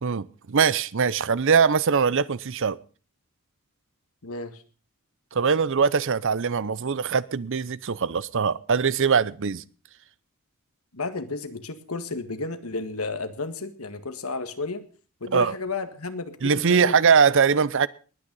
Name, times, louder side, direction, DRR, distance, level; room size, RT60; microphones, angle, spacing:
voice 1, 0.0-2.8 5.3-9.6 15.3-15.5 16.4-17.9, right 6 dB, 60° right, 0.6 m, -22 dB
voice 2, 4.2-4.6 10.9-14.8 15.2-17.1, left 3 dB, 75° left, 1.7 m, -33 dB
19.5 x 9.3 x 5.4 m
head